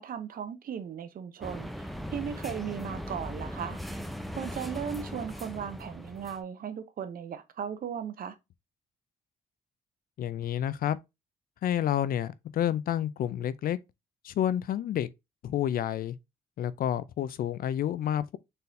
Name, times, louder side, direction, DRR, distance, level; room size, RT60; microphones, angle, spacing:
voice 1, 0.0-1.7 2.1-3.8 4.4-8.3, right 8 dB, 60° right, 0.8 m, -36 dB
sound 1, 1.4-6.4, equal, ahead, 0.6 m, -39 dB
voice 2, 10.2-11.0 11.6-13.8 14.2-15.1 15.4-16.2 16.6-18.4, left 11 dB, 60° left, 0.4 m, -29 dB
4.0 x 3.7 x 2.7 m
supercardioid pair, 70°, 17 cm